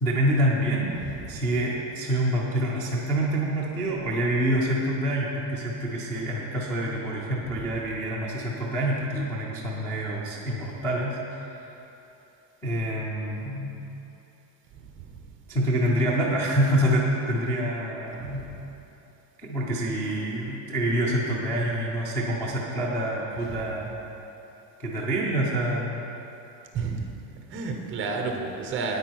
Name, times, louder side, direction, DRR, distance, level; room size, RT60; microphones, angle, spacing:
voice 1, 0.0-0.9 1.2-11.6 12.6-13.7 15.5-18.4 19.4-24.0 24.8-26.1, right 1 dB, 5° left, -10 dB, 0.4 m, -26 dB
voice 2, 1.0-1.4 14.8-15.0 18.2-18.6 23.4-23.7 26.7-27.1 27.5-29.0, right 4 dB, 25° right, 3 dB, 0.7 m, -32 dB
9.4 x 8.8 x 4.6 m, 2.9 s
cardioid pair, 170°, 49 cm